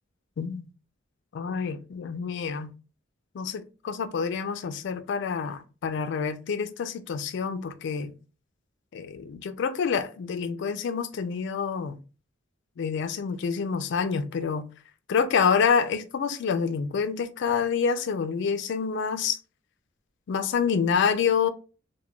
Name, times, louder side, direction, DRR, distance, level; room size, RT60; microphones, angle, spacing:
voice 1, 0.4-0.7 1.3-2.7 3.3-8.1 8.9-12.0 12.8-14.6 15.1-19.4 20.3-21.5, left 6 dB, 60° left, 0.3 m, -27 dB
2.2 x 2.1 x 3.6 m
head